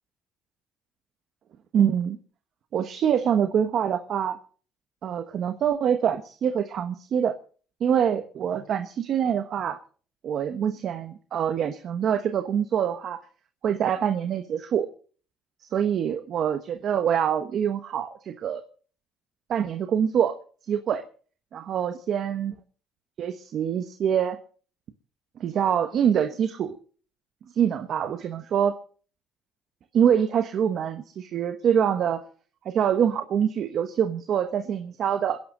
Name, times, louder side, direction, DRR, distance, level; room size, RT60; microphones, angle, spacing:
voice 1, 1.7-2.2 2.7-4.4 5.0-7.3 7.8-9.8 10.2-13.2 13.6-14.9 15.7-18.6 19.5-20.4 20.7-21.0 21.5-22.5 23.2-24.4 25.4-26.8 27.5-28.8 29.9-32.2 32.6-35.4, right 8 dB, 50° right, 8 dB, 1.2 m, -25 dB
27.5 x 11.0 x 3.9 m, 0.43 s
cardioid pair, 135°, 0 cm